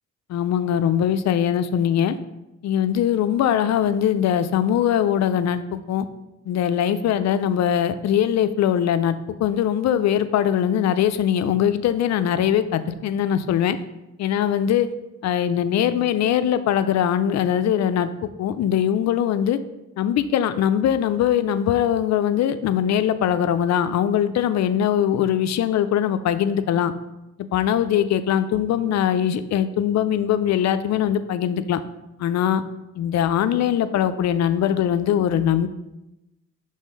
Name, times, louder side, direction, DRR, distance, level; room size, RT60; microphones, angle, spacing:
voice 1, 0.3-2.2 2.6-5.6 5.9-6.1 6.5-13.8 14.2-14.9 15.2-18.1 18.4-19.6 20.0-26.9 27.5-31.8 32.2-32.6 33.0-35.7, left 9 dB, 60° left, 11 dB, 0.5 m, -21 dB
5.5 x 3.3 x 5.3 m, 0.95 s
cardioid pair, 90°, 30 cm